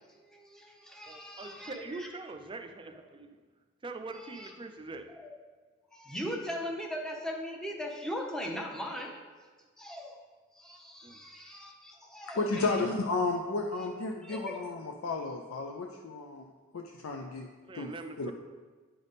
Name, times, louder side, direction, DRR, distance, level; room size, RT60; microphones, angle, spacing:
voice 1, 0.2-2.1 4.1-4.5 5.1-5.4 5.9-9.2 9.8-10.2 10.5-12.8 14.2-14.6, equal, 5° left, 1 dB, 0.8 m, -39 dB
voice 2, 1.1-3.4 3.8-5.1 11.0-11.2 17.7-18.3, right 3 dB, 25° right, 6 dB, 0.4 m, -43 dB
voice 3, 12.3-16.5 16.7-18.3, left 3 dB, 80° left, 3 dB, 0.5 m, -33 dB
10.0 x 3.5 x 4.1 m, 1.4 s
head